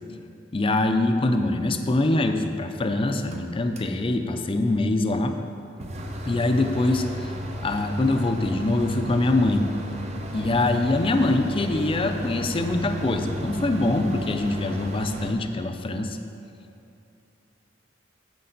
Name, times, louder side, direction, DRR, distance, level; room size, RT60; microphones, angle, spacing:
voice 1, 0.5-5.4 6.3-7.3 7.6-9.7 10.3-16.2, left 2 dB, 30° left, 6 dB, 0.5 m, -24 dB
sound 1, 3.3-3.4 3.8-3.9 5.8-15.3, equal, 35° right, 0.7 m, -33 dB
9.8 x 7.6 x 4.0 m, 2.7 s
head